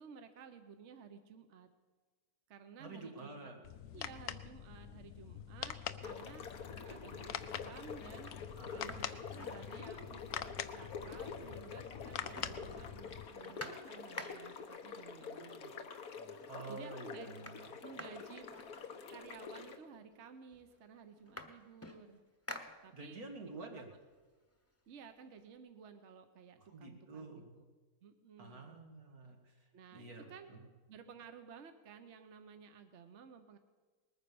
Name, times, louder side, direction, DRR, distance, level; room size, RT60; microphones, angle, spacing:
voice 1, 0.0-1.7 2.5-3.5 3.9-15.9 16.7-17.3 17.8-18.5 19.1-22.2 22.8-23.7 24.9-27.7 28.0-28.8 29.7-30.6 30.9-33.6, right 6 dB, 55° right, 8 dB, 1.2 m, -55 dB
voice 2, 2.8-3.6 8.6-9.0 12.2-12.9 16.5-17.6 22.9-23.9 26.6-27.5 28.4-30.6, right 3 dB, 90° right, 1 dB, 2.7 m, -50 dB
sound 1, 3.6-13.3, left 10 dB, 70° left, 1.0 m, -45 dB
sound 2, 6.0-19.8, left 5 dB, 90° left, 1.6 m, -47 dB
sound 3, 8.3-10.2 10.5-10.6 10.9-11.7 12.0-14.7 15.7-15.8 16.2-16.6 16.9-19.3 20.1-20.2 20.5-23.3 23.8-25.5, left 1 dB, 10° left, 1.0 m, -51 dB
20.0 x 9.6 x 6.9 m, 1.4 s
omnidirectional pair, 1.5 m